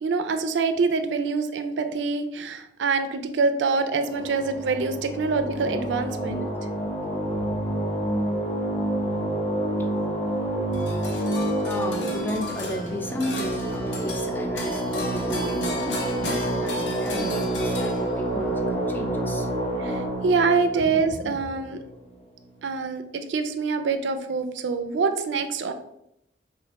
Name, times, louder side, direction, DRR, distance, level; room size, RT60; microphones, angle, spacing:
voice 1, 0.0-6.5 19.8-21.8 22.6-25.7, right 4 dB, 70° right, 8 dB, 0.4 m, -25 dB
sound 1, 4.0-22.1, right 1 dB, 35° left, 0.7 m, -28 dB
sound 2, 10.7-18.4, left 2 dB, 80° left, 0.7 m, -35 dB
voice 2, 11.6-19.5 20.7-20.8, left 1 dB, 10° left, 3 dB, 0.3 m, -33 dB
3.1 x 2.5 x 4.0 m, 0.80 s
head